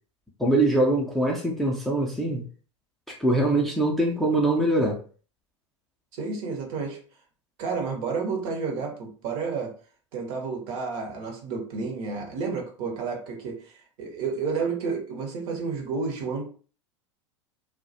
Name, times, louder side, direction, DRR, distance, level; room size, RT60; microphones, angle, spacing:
voice 1, 0.4-2.5 3.1-5.0, right 1 dB, ahead, -1 dB, 0.4 m, -23 dB
voice 2, 6.1-7.0 7.6-9.7 10.1-16.4, right 5 dB, 50° right, 2 dB, 0.8 m, -31 dB
2.3 x 2.1 x 2.6 m, 0.40 s
figure-of-eight pair, 85°, 16 cm